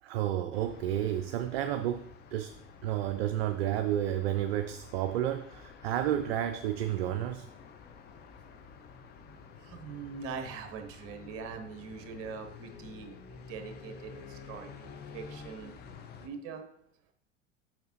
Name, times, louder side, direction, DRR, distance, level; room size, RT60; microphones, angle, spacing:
voice 1, 0.0-2.5 2.8-7.5, right 11 dB, 55° right, 8 dB, 0.5 m, -31 dB
sound 1, 0.5-16.3, left 5 dB, 25° left, 0.6 m, -50 dB
voice 2, 9.6-13.2 13.5-15.7 16.2-16.7, right 5 dB, 40° right, 6 dB, 0.9 m, -42 dB
7.0 x 5.7 x 3.0 m, 0.73 s
figure-of-eight pair, 80°, 37 cm